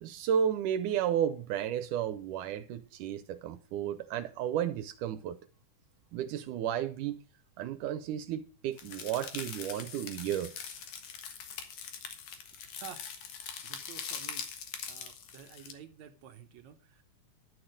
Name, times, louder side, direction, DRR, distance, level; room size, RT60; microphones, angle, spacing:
voice 1, 0.0-5.4 6.1-7.2 7.6-10.5, right 9 dB, 85° right, 2.3 m, -33 dB
sound 1, 8.8-15.7, left 7 dB, 65° left, 2.8 m, -42 dB
voice 2, 12.8-13.4 13.6-14.5 14.9-17.0, right 9 dB, 70° right, 2.2 m, -51 dB
12.0 x 6.3 x 6.4 m
omnidirectional pair, 3.6 m